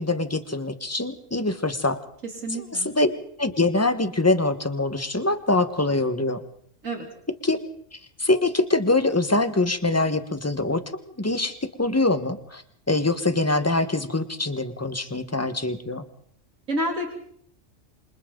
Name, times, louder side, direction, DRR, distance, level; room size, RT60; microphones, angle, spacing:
voice 1, 0.0-2.0 2.5-3.1 3.4-6.4 7.4-7.6 7.9-10.8 11.2-16.0, left 2 dB, 10° left, 10 dB, 1.2 m, -24 dB
voice 2, 2.4-2.9 6.8-7.0 16.7-17.1, right 1 dB, 90° right, 1 dB, 3.4 m, -28 dB
28.0 x 26.5 x 3.9 m, 0.62 s
omnidirectional pair, 1.3 m